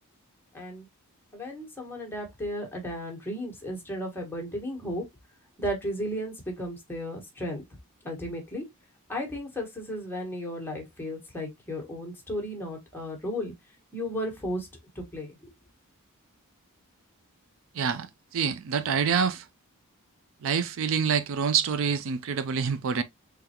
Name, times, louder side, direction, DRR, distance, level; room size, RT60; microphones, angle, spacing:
voice 1, 0.5-0.9 1.3-5.0 5.6-7.6 8.0-8.6 9.1-13.5 13.9-14.7 14.9-15.5, equal, 10° left, 1.3 m, -34 dB
voice 2, 17.7-19.5 20.4-23.0, right 6 dB, 60° right, 0.4 m, -26 dB
3.8 x 3.3 x 2.8 m
head